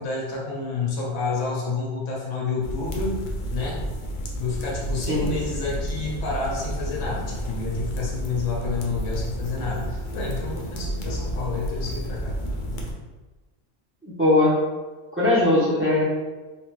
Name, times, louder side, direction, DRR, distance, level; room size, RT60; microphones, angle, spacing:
voice 1, 0.0-3.2 3.5-3.8 4.4-12.4, left 4 dB, 85° left, -4 dB, 1.2 m, -29 dB
sound 1, 2.6-12.9, equal, 55° left, 0.6 m, -31 dB
voice 2, 14.0-14.5 15.1-16.0, left 2 dB, 15° right, -7 dB, 0.7 m, -20 dB
3.3 x 2.4 x 3.1 m, 1.2 s
omnidirectional pair, 1.3 m